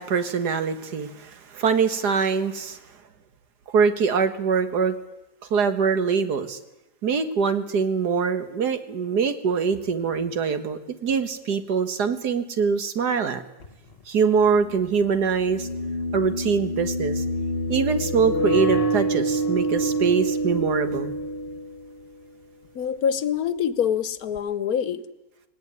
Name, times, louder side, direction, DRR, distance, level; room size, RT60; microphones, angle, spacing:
voice 1, 0.0-2.8 3.7-5.0 5.5-6.6 7.0-13.4 14.1-15.7 16.1-17.2 17.7-21.1, right 5 dB, 85° right, 10 dB, 2.0 m, -23 dB
sound 1, 13.6-13.7 15.2-22.1, right 1 dB, 40° left, 1.5 m, -26 dB
voice 2, 22.7-25.1, left 8 dB, 70° left, 15 dB, 1.4 m, -25 dB
18.5 x 18.5 x 9.5 m, 0.97 s
omnidirectional pair, 1.7 m